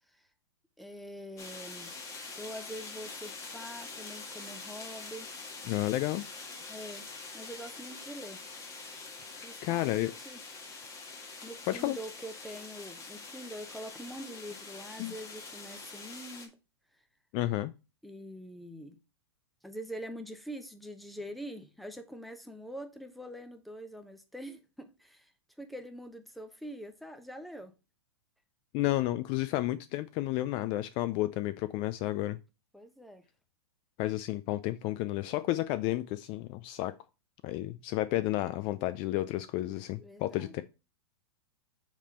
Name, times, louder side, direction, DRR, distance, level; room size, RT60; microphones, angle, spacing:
voice 1, 0.8-1.9 2.4-5.3 6.7-7.1 7.3-8.4 9.4-10.4 11.4-16.5 18.0-19.0 19.6-25.3 25.6-27.7 32.7-33.2 40.0-40.6, equal, ahead, 0.9 m, -44 dB
sound 1, 1.4-16.5, left 3 dB, 20° left, 1.7 m, -45 dB
voice 2, 5.7-6.2 9.3-10.1 11.7-12.0 15.0-15.1 17.3-17.7 28.7-32.4 34.0-36.9 37.4-40.6, left 16 dB, 35° left, 0.5 m, -31 dB
7.3 x 3.7 x 4.2 m
hypercardioid pair, 130°, 14 cm